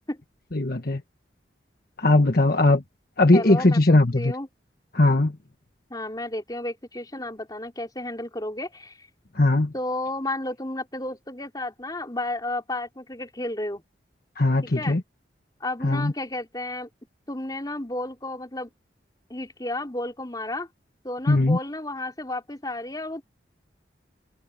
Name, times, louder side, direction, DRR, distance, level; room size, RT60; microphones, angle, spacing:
voice 1, 0.5-1.0 2.0-2.8 3.2-4.3 4.9-5.3 9.4-9.7 14.4-15.0 15.8-16.1 21.3-21.6, left 2 dB, 55° left, 1.3 m, -19 dB
voice 2, 3.3-4.5 5.9-9.1 9.7-13.8 14.7-15.0 15.6-16.9 17.3-18.7 19.3-20.7 21.0-23.2, left 1 dB, 20° left, 4.3 m, -32 dB
head